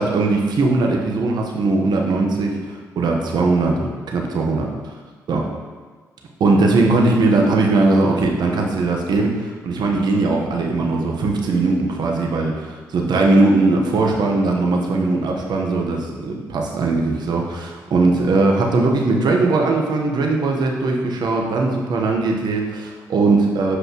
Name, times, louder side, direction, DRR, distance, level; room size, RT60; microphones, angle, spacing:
voice 1, 0.0-4.7 5.3-5.5 6.4-12.5 12.9-23.8, right 3 dB, 65° right, 0 dB, 1.1 m, -19 dB
8.1 x 5.2 x 3.0 m, 1.4 s
hypercardioid pair, 45°, 8 cm